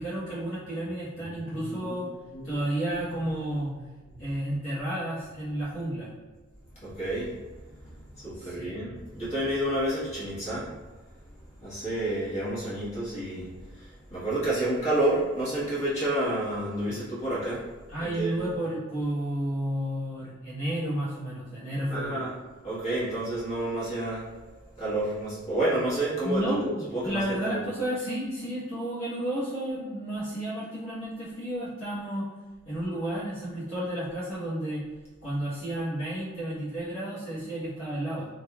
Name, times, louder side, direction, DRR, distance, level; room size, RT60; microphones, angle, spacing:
voice 1, 0.0-2.1 2.4-3.7 4.2-6.1 8.3-8.7 16.9-17.1 17.9-22.3 26.2-32.3 32.6-34.8 35.2-38.3, right 1 dB, 80° left, -11 dB, 1.1 m, -32 dB
voice 2, 1.7-2.7 6.8-7.3 7.8-10.7 11.6-17.6 18.0-18.4 21.9-22.4 22.6-24.3 24.8-27.6, right 1 dB, 35° left, -9 dB, 1.2 m, -30 dB
3.1 x 2.6 x 2.3 m, 1.3 s
head